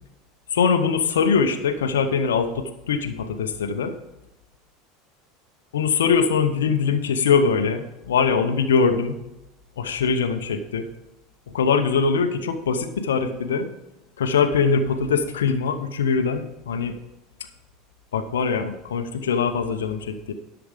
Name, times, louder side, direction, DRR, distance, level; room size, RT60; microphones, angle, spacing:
voice 1, 0.5-3.9 5.7-9.2 9.8-10.9 11.5-13.7 14.2-16.9 18.1-20.3, left 5 dB, 75° left, 7 dB, 0.9 m, -22 dB
11.5 x 7.0 x 5.1 m, 0.95 s
figure-of-eight pair, 75°, 0 cm